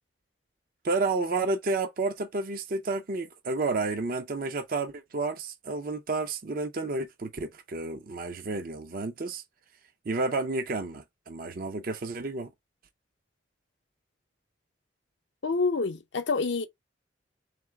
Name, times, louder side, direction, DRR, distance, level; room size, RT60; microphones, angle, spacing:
voice 1, 0.8-9.4 10.1-12.5, right 3 dB, 50° right, 0.6 m, -31 dB
voice 2, 15.4-16.7, left 4 dB, 75° left, 0.7 m, -27 dB
3.8 x 3.5 x 3.4 m
head